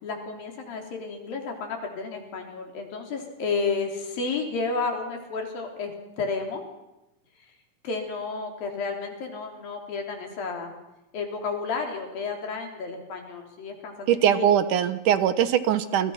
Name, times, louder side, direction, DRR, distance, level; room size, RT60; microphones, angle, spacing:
voice 1, 0.0-6.6 7.8-10.7 11.1-14.4, left 4 dB, 85° left, 2 dB, 5.5 m, -32 dB
voice 2, 14.1-16.1, right 10 dB, 70° right, 12 dB, 2.5 m, -21 dB
29.0 x 25.0 x 6.0 m, 0.96 s
omnidirectional pair, 4.0 m